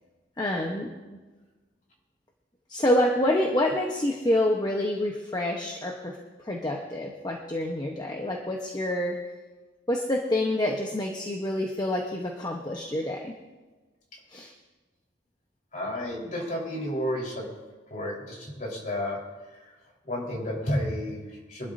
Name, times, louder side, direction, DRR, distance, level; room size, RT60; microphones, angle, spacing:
voice 1, 0.4-1.2 2.7-9.3 9.9-13.3 14.3-14.5, left 1 dB, 20° left, 0 dB, 1.0 m, -27 dB
voice 2, 15.7-17.5 17.9-19.2 19.6-19.7 20.1-21.7, left 1 dB, 40° left, -2 dB, 4.2 m, -31 dB
24.0 x 12.0 x 2.7 m, 1.3 s
head